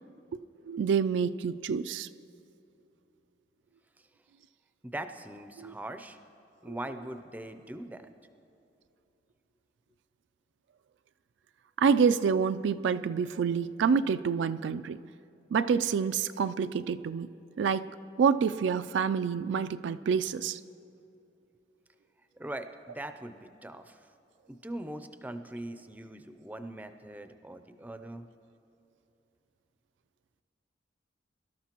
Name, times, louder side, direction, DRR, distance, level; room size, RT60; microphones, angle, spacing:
voice 1, 0.7-2.1 5.6-5.7 6.7-6.8 11.8-15.0 15.5-17.9 18.2-20.6, right 6 dB, 75° right, 12 dB, 0.3 m, -27 dB
voice 2, 4.8-6.2 6.6-8.1 22.4-24.0 24.5-28.3, right 1 dB, 10° right, 9 dB, 0.5 m, -41 dB
23.0 x 12.5 x 3.0 m, 2.8 s
head